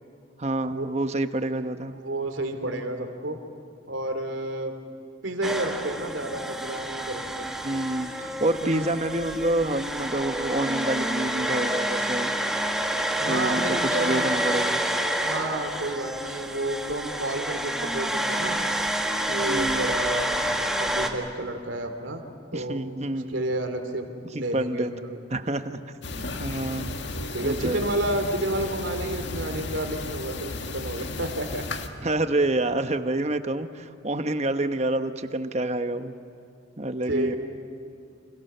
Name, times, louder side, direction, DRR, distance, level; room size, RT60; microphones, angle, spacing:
voice 1, 0.4-2.0 7.6-12.3 13.3-14.8 19.4-19.9 22.5-23.4 24.5-24.9 25.3-25.8 26.1-27.0 27.4-27.8 32.0-36.1 36.8-37.4, right 1 dB, 35° right, 9 dB, 1.1 m, -28 dB
voice 2, 1.9-3.4 3.9-4.7 5.2-7.5 8.6-8.9 13.2-14.3 15.2-18.6 19.3-20.3 20.8-22.2 22.5-22.8 23.3-25.2 27.3-31.6 37.1-37.4, right 1 dB, 75° right, 6 dB, 2.8 m, -30 dB
sound 1, 5.4-21.1, right 1 dB, ahead, 1.6 m, -28 dB
sound 2, 26.0-31.9, left 2 dB, 65° left, 1.8 m, -34 dB
30.0 x 26.5 x 6.8 m, 2.6 s
head